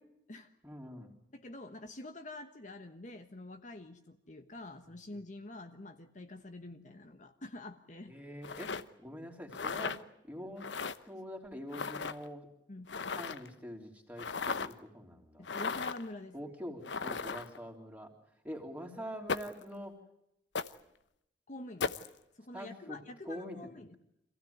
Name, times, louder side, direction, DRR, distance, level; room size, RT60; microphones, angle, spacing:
voice 1, 0.6-1.1 8.1-10.0 10.2-10.7 11.0-12.5 13.1-15.5 16.3-18.1 18.4-19.9 22.5-23.0 23.3-23.6, equal, 10° right, 1 dB, 3.4 m, -44 dB
voice 2, 1.3-8.1 12.7-12.9 15.4-16.3 21.5-22.1 22.3-24.0, left 2 dB, 45° left, 7 dB, 1.2 m, -47 dB
sound 1, 8.4-8.8 9.5-10.0 10.6-11.0 11.7-12.2 12.9-13.5 14.2-14.7 15.4-16.0 16.8-17.6 19.3-19.6 20.5-20.7 21.8-22.1, left 5 dB, 90° left, 0.9 m, -36 dB
26.0 x 16.0 x 9.5 m, 0.82 s
head